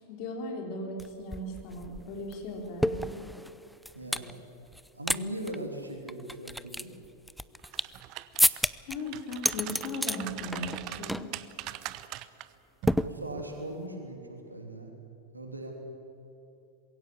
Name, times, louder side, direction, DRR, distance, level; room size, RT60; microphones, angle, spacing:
voice 1, 0.0-3.2 8.9-11.3, left 1 dB, 45° left, 2 dB, 3.8 m, -37 dB
sound 1, 1.0-1.1 1.3-4.3 4.7-5.2 5.5-5.6 6.1-8.0 8.4-9.0 9.3-10.2 10.5-10.8 11.1-11.4 11.7-11.9 12.9-13.6, equal, ahead, 0.5 m, -30 dB
voice 2, 3.9-4.4 4.9-6.9 13.0-14.9 15.3-15.7, right 1 dB, 80° right, 2 dB, 3.0 m, -39 dB
sound 2, 7.6-8.6 9.0-12.5 12.8-13.0, right 15 dB, 40° right, 0.7 m, -41 dB
21.5 x 16.5 x 8.6 m, 2.9 s
figure-of-eight pair, 90°, 0 cm